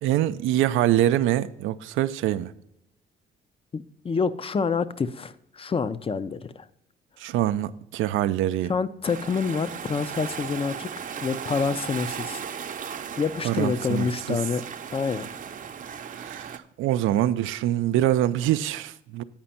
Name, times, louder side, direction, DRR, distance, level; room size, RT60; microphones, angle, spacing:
voice 1, 0.0-2.5 7.2-8.7 13.4-14.4 15.8-19.2, right 13 dB, 90° right, 0.5 m, -25 dB
voice 2, 3.7-6.7 8.7-12.4 13.2-14.6 14.9-15.2, left 5 dB, 30° left, 0.5 m, -27 dB
sound 1, 9.0-16.6, right 7 dB, 40° right, 0.6 m, -36 dB
8.8 x 5.1 x 5.7 m
cardioid pair, 90°, 20 cm